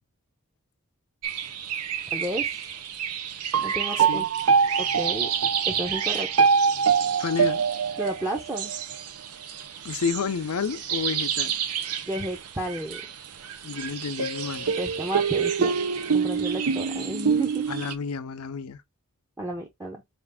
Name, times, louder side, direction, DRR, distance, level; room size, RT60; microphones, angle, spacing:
sound 1, 1.2-17.9, right 6 dB, 85° right, 0.6 m, -26 dB
voice 1, 2.1-2.5 3.6-4.3 4.8-5.3 5.7-6.3 8.0-8.7 12.1-13.0 14.8-15.8 16.1-17.6 19.4-20.0, right 1 dB, 15° right, 0.6 m, -32 dB
voice 2, 7.2-7.6 9.8-11.5 13.6-14.7 17.7-18.8, left 5 dB, 75° left, 0.5 m, -30 dB
5.0 x 2.5 x 3.4 m
head